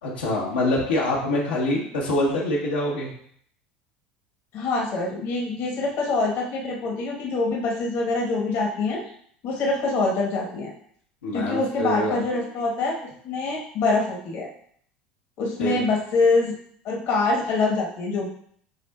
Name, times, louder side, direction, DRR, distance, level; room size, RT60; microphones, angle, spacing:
voice 1, 0.0-3.1 11.2-12.2 15.6-15.8, left 1 dB, 85° left, -5 dB, 1.1 m, -25 dB
voice 2, 4.5-9.0 9.4-10.7 11.3-13.0 13.2-14.5 15.4-16.6 16.8-18.3, left 3 dB, 55° left, -2 dB, 1.2 m, -25 dB
7.6 x 2.6 x 2.3 m, 0.62 s
hypercardioid pair, 80°, 5 cm